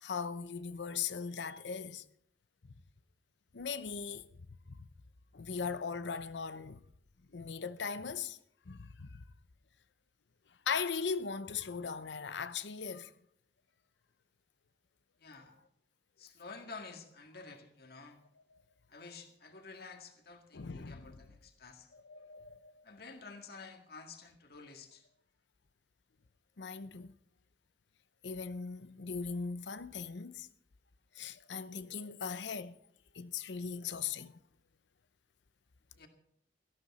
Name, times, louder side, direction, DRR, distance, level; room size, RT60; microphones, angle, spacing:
voice 1, 0.0-2.0 3.5-4.3 4.7-4.9 5.3-6.8 7.3-8.4 8.7-9.2 10.7-13.1 18.5-18.6 20.5-21.2 21.9-22.8 26.6-27.1 28.2-30.5 31.1-32.8 33.1-34.4, left 5 dB, 85° left, 0.7 m, -39 dB
voice 2, 15.2-15.5 16.2-18.2 18.9-21.9 22.8-25.1 36.0-36.1, left 4 dB, 60° left, 1.8 m, -50 dB
17.5 x 13.0 x 4.2 m
head